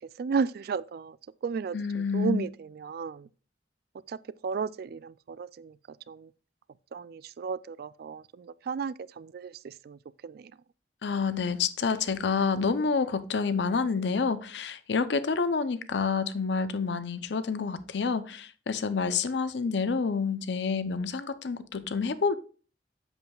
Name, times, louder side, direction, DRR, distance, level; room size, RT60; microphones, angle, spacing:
voice 1, 0.0-3.3 4.1-6.3 6.9-10.6, right 5 dB, 60° right, 0.3 m, -34 dB
voice 2, 1.7-2.4 11.0-22.4, left 5 dB, 80° left, 0.6 m, -28 dB
8.0 x 7.1 x 2.3 m
head